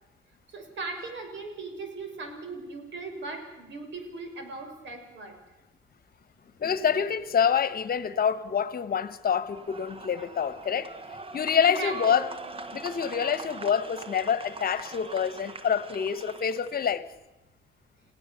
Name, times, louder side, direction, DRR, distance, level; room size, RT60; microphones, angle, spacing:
voice 1, 0.5-5.4 11.6-12.3, right 3 dB, 70° right, 5.6 m, -38 dB
voice 2, 6.6-10.9 11.3-12.3 12.7-17.1, left 7 dB, 50° left, 1.3 m, -26 dB
sound 1, 9.5-16.9, right 3 dB, 30° right, 1.5 m, -42 dB
29.0 x 17.0 x 7.0 m
cardioid pair, 90°, 20 cm